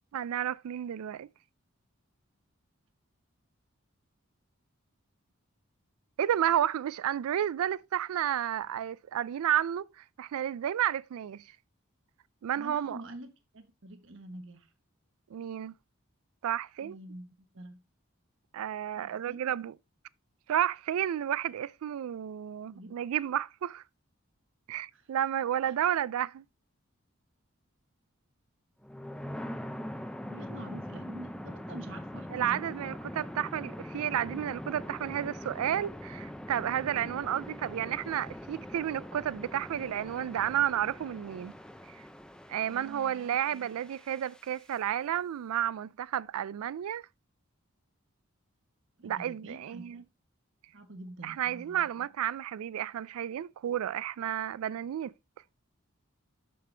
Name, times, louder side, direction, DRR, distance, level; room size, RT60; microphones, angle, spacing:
voice 1, 0.1-1.3 6.2-11.4 12.4-13.0 15.3-15.7 16.4-17.0 18.5-19.7 20.5-23.8 24.7-26.4 32.3-41.5 42.5-47.0 49.0-50.0 51.2-55.1, right 10 dB, 85° right, 0.3 m, -31 dB
voice 2, 12.6-14.7 16.8-17.8 18.9-19.5 22.7-23.3 24.9-25.1 25.7-25.8 30.3-32.7 42.6-43.8 49.0-50.0 50.7-52.1, right 1 dB, 60° right, 1.2 m, -47 dB
sound 1, 28.8-44.7, equal, 5° left, 0.5 m, -43 dB
6.8 x 6.7 x 3.3 m
head